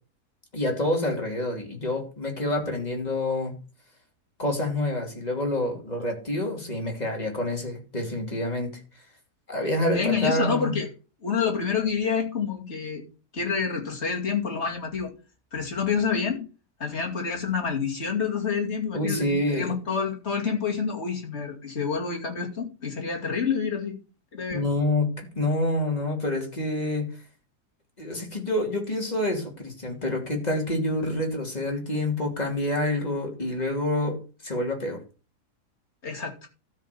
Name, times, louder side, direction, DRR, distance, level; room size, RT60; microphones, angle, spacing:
voice 1, 0.5-3.5 4.4-8.7 9.5-10.8 18.9-19.8 24.5-27.1 28.0-34.2 34.4-35.0, left 1 dB, 25° left, 1 dB, 3.0 m, -27 dB
voice 2, 9.9-10.9 11.2-13.0 13.3-15.1 15.5-16.4 16.8-23.9 24.3-24.6 36.0-36.4, left 6 dB, 45° left, 1 dB, 2.7 m, -28 dB
13.0 x 5.7 x 6.9 m, 0.34 s
omnidirectional pair, 1.7 m